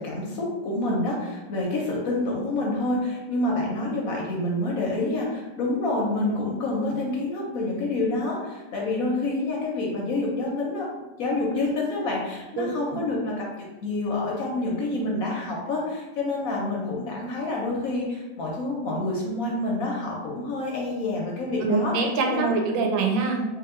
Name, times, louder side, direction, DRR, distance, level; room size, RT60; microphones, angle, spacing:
voice 1, 0.0-10.9 11.2-21.9 22.3-22.6, left 2 dB, 65° left, -2 dB, 0.9 m, -27 dB
voice 2, 12.6-13.0 21.6-23.4, right 4 dB, 90° right, 2 dB, 1.3 m, -25 dB
3.1 x 2.9 x 3.6 m, 1.2 s
omnidirectional pair, 2.0 m